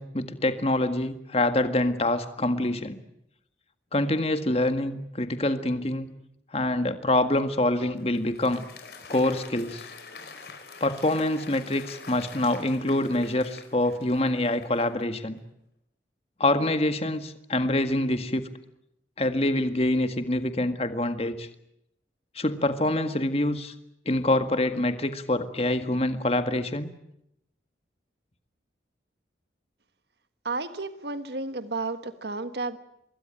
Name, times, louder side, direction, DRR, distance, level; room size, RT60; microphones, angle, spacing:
voice 1, 0.0-3.0 3.9-6.1 6.5-8.6 9.1-9.9 10.8-15.4 16.4-18.5 19.2-21.5 22.4-23.7 24.1-26.9, left 1 dB, 35° left, 9 dB, 1.8 m, -25 dB
Applause, 7.6-15.2, left 4 dB, 60° left, 5.0 m, -46 dB
voice 2, 30.4-32.8, right 3 dB, 65° right, 10 dB, 1.6 m, -32 dB
25.0 x 22.5 x 9.1 m, 0.80 s
head